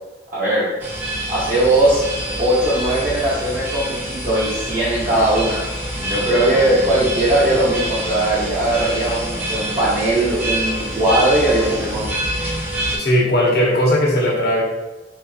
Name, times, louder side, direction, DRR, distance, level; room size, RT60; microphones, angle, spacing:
voice 1, 0.3-0.7 1.3-2.0 2.4-5.7 5.9-12.1, right 1 dB, 45° right, -10 dB, 0.9 m, -19 dB
sound 1, 0.8-13.0, right 1 dB, 10° right, 0.7 m, -26 dB
sound 2, 6.0-12.1, equal, 85° right, 1.1 m, -37 dB
voice 2, 13.0-14.6, left 1 dB, 65° left, -4 dB, 0.9 m, -17 dB
3.6 x 3.0 x 2.7 m, 1.1 s
head